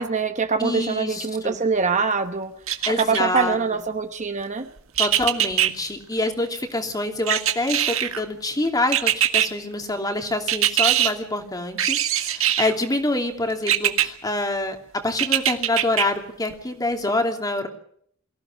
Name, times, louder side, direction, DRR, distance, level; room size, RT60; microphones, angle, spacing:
voice 1, 0.0-2.5 2.9-4.7, right 5 dB, 35° right, 8 dB, 1.0 m, -24 dB
voice 2, 0.6-1.6 2.9-3.6 5.0-17.7, left 2 dB, 15° left, 4 dB, 2.9 m, -26 dB
sound 1, 2.7-3.4 5.0-5.7 7.3-8.2 8.9-9.5 10.5-11.1 11.8-12.7 13.7-14.1 15.2-16.0 16.5-16.6, right 11 dB, 65° right, 1.8 m, -21 dB
23.5 x 15.5 x 9.0 m, 0.66 s
head